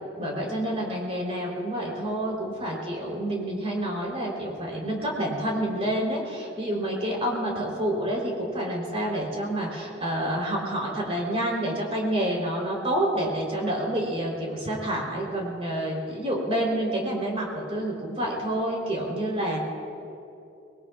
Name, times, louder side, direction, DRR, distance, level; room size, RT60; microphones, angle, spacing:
voice 1, 0.2-19.6, right 1 dB, 35° right, -2 dB, 3.7 m, -28 dB
23.0 x 21.5 x 2.4 m, 2.8 s
head